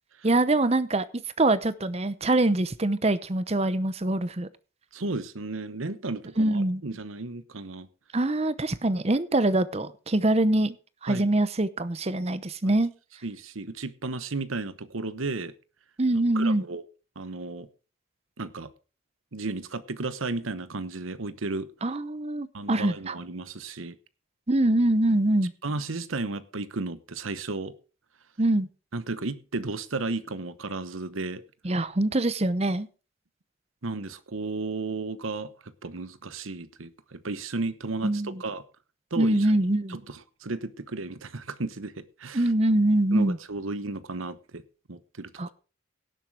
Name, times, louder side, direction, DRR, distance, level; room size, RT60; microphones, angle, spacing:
voice 1, 0.2-4.5 6.4-6.8 8.1-10.7 11.0-12.9 16.0-16.6 21.8-23.2 24.5-25.5 28.4-28.7 31.6-32.9 38.0-38.4 39.2-40.0 42.3-43.4 45.4-45.5, right 2 dB, 30° right, 0.8 m, -24 dB
voice 2, 4.9-7.9 11.1-11.3 12.6-12.7 13.2-15.5 16.3-16.8 17.2-17.7 18.4-18.7 19.3-21.7 22.5-23.9 25.6-27.7 28.9-31.4 33.8-38.6 39.1-39.6 39.9-42.5 43.1-44.6 44.9-45.5, right 3 dB, 90° right, 1.0 m, -34 dB
17.0 x 7.4 x 4.8 m
head